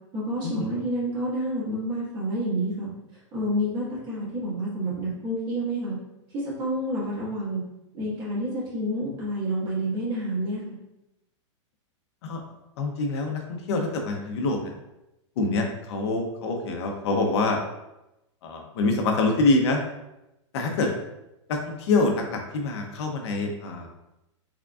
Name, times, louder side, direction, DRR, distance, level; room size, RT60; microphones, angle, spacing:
voice 1, 0.1-2.9 3.3-6.0 6.3-7.6 7.9-10.8, right 1 dB, 30° right, -7 dB, 1.5 m, -29 dB
voice 2, 12.8-14.7 15.4-17.6 18.4-19.8 20.5-20.9 21.5-23.9, left 3 dB, 60° left, 2 dB, 0.6 m, -25 dB
3.6 x 3.5 x 2.4 m, 0.92 s
supercardioid pair, 150°, 16 cm